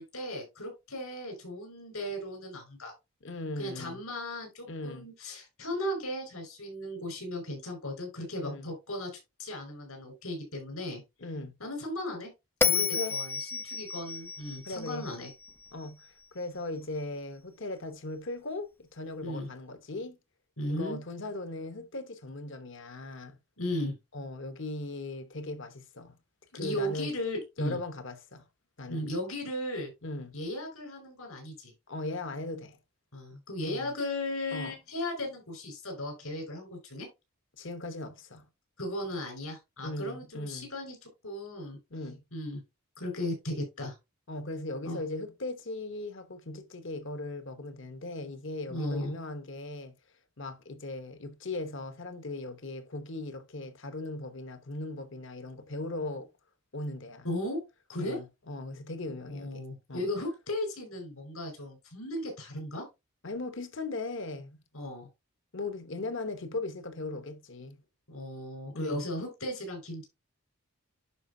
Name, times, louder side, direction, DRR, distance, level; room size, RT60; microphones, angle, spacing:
voice 1, 0.0-2.9 3.6-9.1 9.4-11.0 11.6-12.3 12.7-15.3 19.2-19.5 20.6-21.0 23.6-24.0 26.5-27.8 28.9-29.9 30.3-31.7 33.1-37.1 38.8-41.0 41.2-41.8 42.3-42.6 43.0-43.9 44.8-45.0 48.7-49.1 57.2-57.6 57.9-58.2 59.3-62.9 64.7-65.1 68.1-70.0, left 1 dB, 75° left, 5.2 m, -36 dB
voice 2, 3.2-4.0 4.7-5.1 8.4-8.7 11.2-11.5 12.6-13.2 14.6-15.1 15.7-16.1 16.3-20.2 20.7-23.4 24.1-26.2 26.5-27.1 27.6-28.4 28.8-29.1 30.0-30.3 31.9-32.8 33.6-33.9 34.5-34.8 37.6-38.4 39.8-40.7 41.9-42.2 44.3-49.9 50.4-56.3 56.7-57.3 58.0-60.1 63.2-64.6 65.5-67.8 68.7-69.0, left 2 dB, 55° left, 1.1 m, -38 dB
Bell, 12.6-15.9, left 6 dB, 10° left, 0.3 m, -31 dB
11.5 x 5.0 x 2.7 m
head